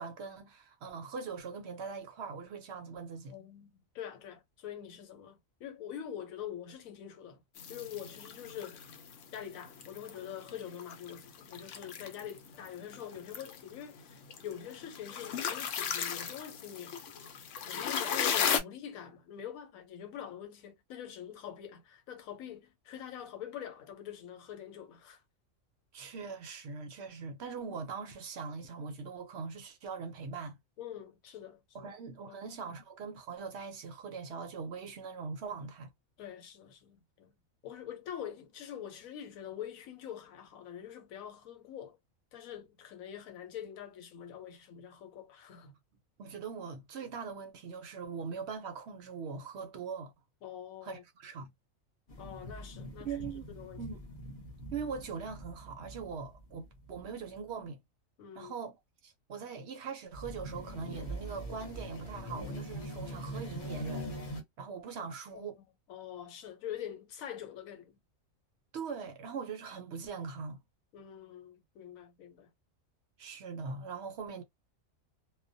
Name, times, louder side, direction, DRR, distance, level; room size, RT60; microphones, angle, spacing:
voice 1, 0.0-3.3 25.9-30.6 31.7-35.9 46.2-50.1 50.8-51.5 53.0-53.4 53.8-54.0 54.7-57.8 58.3-58.7 59.0-64.1 64.6-65.6 68.7-70.6 73.2-74.4, right 5 dB, 65° right, 0.7 m, -41 dB
voice 2, 3.3-7.4 7.7-8.8 9.3-17.0 17.6-25.2 30.8-31.9 32.3-32.8 36.2-37.4 37.6-42.0 42.3-45.7 50.4-51.0 52.2-53.8 58.2-58.5 65.0-65.5 65.9-68.0 70.9-72.5, left 9 dB, 90° left, 1.1 m, -45 dB
sound 1, 7.6-18.6, left 7 dB, 70° left, 0.9 m, -36 dB
sound 2, 52.1-57.1 60.1-64.4, equal, 45° left, 0.9 m, -43 dB
2.3 x 2.1 x 2.5 m
omnidirectional pair, 1.4 m